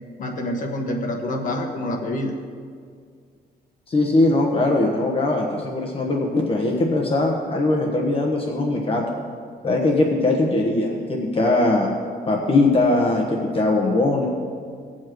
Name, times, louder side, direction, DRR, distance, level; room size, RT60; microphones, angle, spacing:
voice 1, 0.2-2.3, left 1 dB, 55° left, 1 dB, 1.6 m, -27 dB
voice 2, 3.9-9.0 9.6-11.9 12.3-14.3, left 2 dB, 35° left, -1 dB, 1.2 m, -20 dB
19.0 x 7.4 x 3.1 m, 2.1 s
cardioid pair, 125°, 16 cm